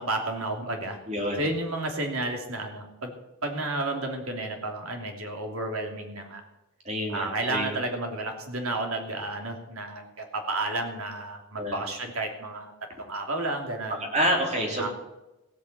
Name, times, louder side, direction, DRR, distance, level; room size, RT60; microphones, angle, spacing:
voice 1, 0.0-1.0 1.4-3.1 3.4-6.4 7.1-12.7 13.0-14.1 14.8-14.9, right 2 dB, 90° right, 3 dB, 2.9 m, -31 dB
voice 2, 1.1-1.4 6.9-7.7 11.6-11.8 13.9-14.9, equal, 30° right, 0 dB, 3.6 m, -28 dB
16.0 x 8.3 x 8.1 m, 0.96 s
head